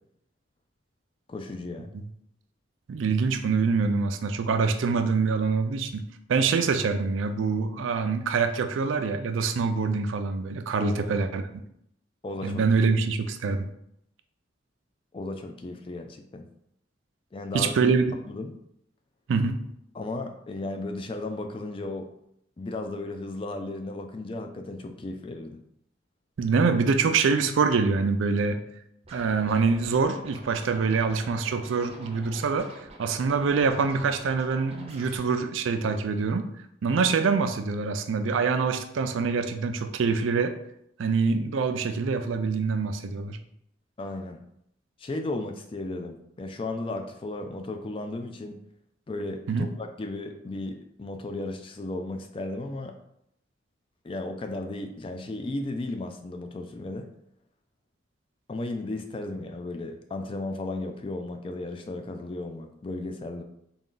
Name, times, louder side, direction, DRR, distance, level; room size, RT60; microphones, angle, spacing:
voice 1, 1.3-1.9 10.8-11.3 12.2-12.6 15.1-16.5 17.3-17.7 18.3-18.5 19.9-22.1 22.6-25.6 44.0-44.4 45.0-48.6 49.1-52.9 54.0-57.1 58.5-63.4, left 2 dB, 25° left, 5 dB, 0.3 m, -35 dB
voice 2, 2.9-11.4 12.4-13.7 17.5-18.2 19.3-19.6 26.4-28.6 29.1-32.7 33.0-36.5 36.8-40.5 41.0-43.4 49.5-49.7, right 4 dB, 85° right, 8 dB, 0.4 m, -25 dB
Scratching (performance technique), 29.0-35.2, right 1 dB, 30° right, 0.6 m, -47 dB
3.8 x 2.3 x 3.7 m, 0.75 s
head